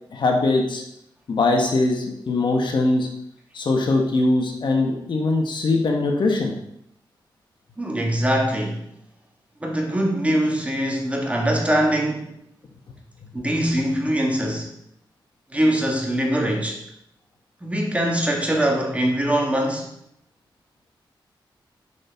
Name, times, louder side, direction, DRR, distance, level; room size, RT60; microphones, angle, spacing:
voice 1, 0.1-0.8 1.3-3.1 3.5-6.6, left 2 dB, 65° left, 1 dB, 1.4 m, -21 dB
voice 2, 7.8-8.9 9.6-12.3 13.3-14.7 15.5-16.8 17.6-19.9, right 1 dB, 15° right, 0 dB, 1.7 m, -22 dB
6.3 x 6.2 x 4.5 m, 0.75 s
cardioid pair, 80°, 8 cm